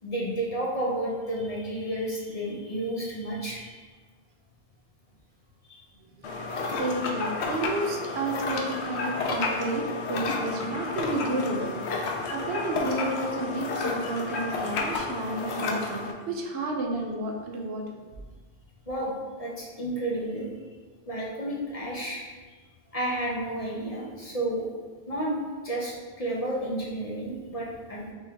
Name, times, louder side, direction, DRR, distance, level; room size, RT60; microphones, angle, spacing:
voice 1, 0.0-3.9 5.6-5.9 18.9-19.1 19.4-20.5 21.1-22.2 22.5-22.6 22.9-24.7 25.1-25.4 25.6-28.1, right 1 dB, 40° left, -4 dB, 0.7 m, -31 dB
sound 1, 6.2-16.1, left 3 dB, 90° left, 0.9 m, -31 dB
voice 2, 6.8-9.8 10.1-18.0, right 2 dB, 75° right, 1 dB, 0.9 m, -31 dB
4.3 x 3.0 x 3.5 m, 1.4 s
omnidirectional pair, 1.1 m